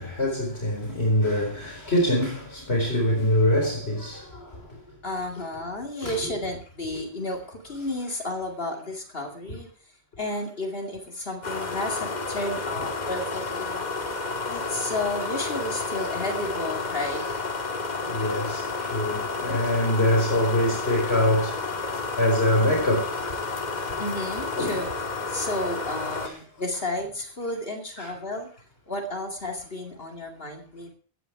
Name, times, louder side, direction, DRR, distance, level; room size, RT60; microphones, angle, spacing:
voice 1, 0.0-4.9 6.0-6.4 6.9-7.0 12.8-12.9 18.1-21.8 22.2-23.3 23.9-24.0 24.6-24.8 26.2-26.3 28.0-28.1, left 1 dB, 90° left, 4.8 m, -25 dB
voice 2, 5.0-9.7 10.2-13.8 14.5-17.2 24.0-24.9 25.3-30.9, left 1 dB, 65° left, 2.6 m, -32 dB
sound 1, 11.4-26.3, left 3 dB, 45° left, 1.6 m, -31 dB
16.5 x 9.9 x 4.7 m
omnidirectional pair, 1.0 m